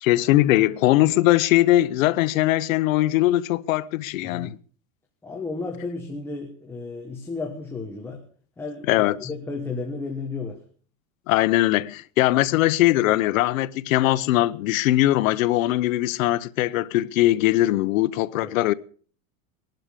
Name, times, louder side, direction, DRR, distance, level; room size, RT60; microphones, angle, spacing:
voice 1, 0.0-4.6 8.9-9.3 11.3-18.7, left 16 dB, 85° left, 0.9 m, -21 dB
voice 2, 5.2-8.2 8.6-10.6 18.4-18.5, left 3 dB, 5° left, 1.3 m, -33 dB
20.5 x 12.0 x 5.1 m
supercardioid pair, 170°, 39 cm